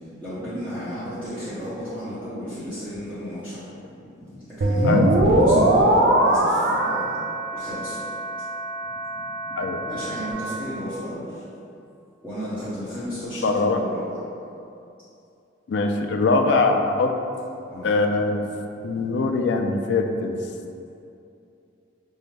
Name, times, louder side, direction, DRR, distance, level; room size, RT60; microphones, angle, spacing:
voice 1, 0.2-3.6 4.2-7.1 7.5-8.0 9.9-11.2 12.2-14.2 17.7-17.9 18.9-19.2, equal, 5° right, -16 dB, 0.8 m, -33 dB
sound 1, 4.6-10.3, right 1 dB, 55° right, 0.4 m, -21 dB
voice 2, 4.8-5.3 9.6-9.8 13.4-13.8 15.7-17.1 17.8-18.4 18.8-20.4, left 3 dB, 60° left, 4 dB, 0.3 m, -22 dB
5.5 x 2.0 x 3.2 m, 2.6 s
head